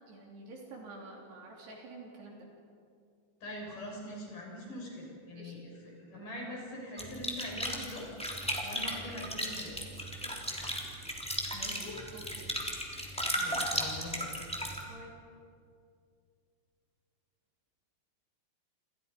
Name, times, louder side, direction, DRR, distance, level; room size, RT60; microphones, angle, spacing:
voice 1, 0.1-2.5 5.4-5.5 10.2-10.7 12.1-12.5 14.9-15.1, right 2 dB, 60° right, -1 dB, 5.3 m, -49 dB
voice 2, 3.4-8.1 8.6-9.8 11.5-12.0 13.3-14.3, left 1 dB, 45° left, -2 dB, 7.6 m, -43 dB
sound 1, 7.0-14.8, equal, ahead, 2.2 m, -36 dB
28.5 x 28.0 x 5.4 m, 2.3 s
omnidirectional pair, 5.5 m